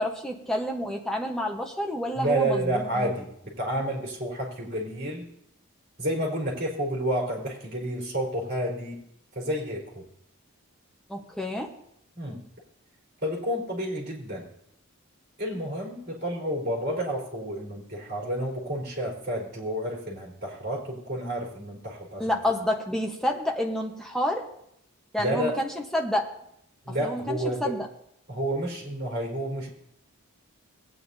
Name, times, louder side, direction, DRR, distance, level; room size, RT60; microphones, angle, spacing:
voice 1, 0.0-3.1 11.1-11.7 22.2-24.4 25.1-26.3 27.0-27.9, left 1 dB, ahead, 0 dB, 1.0 m, -29 dB
voice 2, 2.2-5.3 6.0-9.0 9.3-10.0 12.2-12.4 13.2-14.5 15.4-22.4 25.2-25.6 26.9-27.8 28.3-29.7, right 1 dB, 45° right, -4 dB, 4.0 m, -30 dB
18.5 x 9.3 x 2.7 m, 0.75 s
head